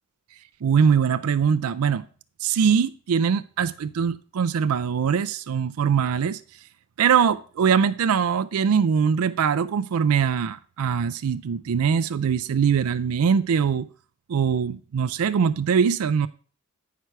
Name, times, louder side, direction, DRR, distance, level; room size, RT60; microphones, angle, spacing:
voice 1, 0.6-2.0 2.4-6.4 7.0-13.9 14.3-16.3, right 7 dB, 75° right, 0.4 m, -22 dB
9.2 x 4.7 x 5.6 m
head